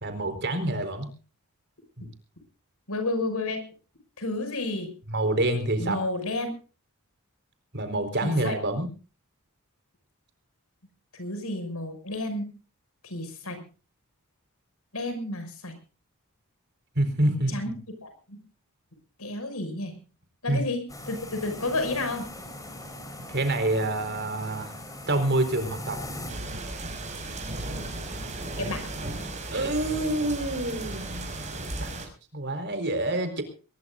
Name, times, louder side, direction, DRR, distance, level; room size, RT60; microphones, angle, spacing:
voice 1, 0.0-1.1 2.0-2.1 5.1-6.0 7.7-8.9 16.9-17.7 20.5-20.6 23.3-24.8 25.1-26.0 29.5-31.3 31.6-31.9 32.3-33.4, right 1 dB, 50° right, 8 dB, 4.3 m, -27 dB
voice 2, 2.9-3.7 4.2-4.9 5.8-6.5 8.2-8.5 11.1-12.5 13.0-13.6 14.9-15.8 17.5-17.7 18.0-18.4 19.2-20.0 20.4-22.3 28.6-28.9, left 2 dB, 75° left, 8 dB, 6.2 m, -31 dB
sound 1, 20.9-26.3, left 1 dB, 15° left, 4.7 m, -40 dB
sound 2, 26.3-32.1, right 2 dB, 30° right, 5.9 m, -35 dB
22.5 x 21.0 x 2.6 m, 0.36 s
head